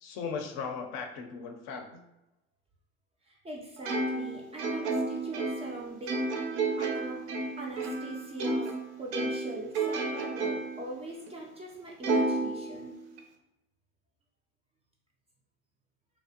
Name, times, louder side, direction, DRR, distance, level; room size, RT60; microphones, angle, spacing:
voice 1, 0.0-2.0, left 5 dB, 50° left, 4 dB, 0.5 m, -37 dB
voice 2, 3.2-7.3 7.6-8.7 9.0-12.9, right 1 dB, 20° right, -2 dB, 0.4 m, -42 dB
Plucked string instrument, 3.8-8.8 9.1-10.8 11.3-11.4 12.0-13.2, right 3 dB, 75° right, 0.5 m, -31 dB
2.6 x 2.0 x 2.6 m, 0.95 s
hypercardioid pair, 95°, 35 cm